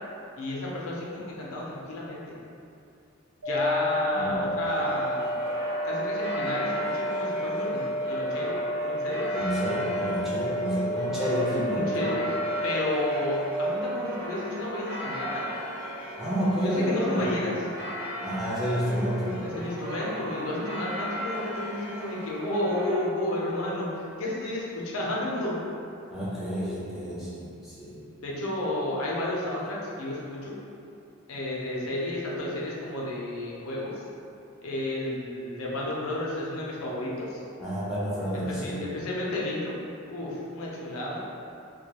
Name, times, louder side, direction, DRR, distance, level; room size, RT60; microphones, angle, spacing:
voice 1, 0.4-2.3 3.5-5.3 5.8-9.3 11.5-12.3 12.6-15.5 16.5-17.6 19.4-23.9 24.2-25.6 28.2-30.6 31.3-34.0 34.6-37.4 38.3-39.8 40.1-41.2, left 1 dB, 75° left, -5 dB, 0.5 m, -32 dB
sound 1, 3.4-13.4, equal, 85° right, 0.7 m, -30 dB
voice 2, 4.1-4.5 9.3-12.0 16.2-17.3 18.2-19.4 26.1-28.0 37.6-38.8, equal, ahead, -10 dB, 0.5 m, -29 dB
sound 2, 4.6-23.0, equal, 35° right, 1.0 m, -37 dB
2.2 x 2.2 x 2.8 m, 2.6 s
head